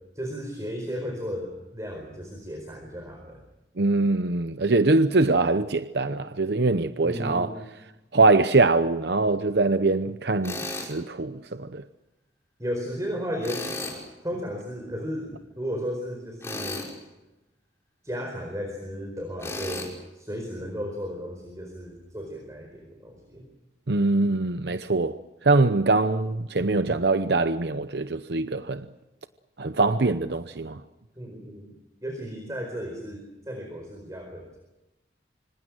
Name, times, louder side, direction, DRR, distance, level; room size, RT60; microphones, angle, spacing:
voice 1, 0.1-3.4 7.0-7.6 12.6-16.8 18.0-23.5 31.2-31.7 32.0-34.6, equal, 20° right, 4.5 m, -34 dB
voice 2, 3.8-7.5 8.1-11.8 23.9-25.2 25.4-28.8 29.6-30.8, right 3 dB, 75° right, 0.8 m, -23 dB
Tools, 10.4-10.9 13.4-14.0 16.4-16.9 19.4-19.9, left 2 dB, 15° left, 5.5 m, -34 dB
26.0 x 25.5 x 6.3 m
head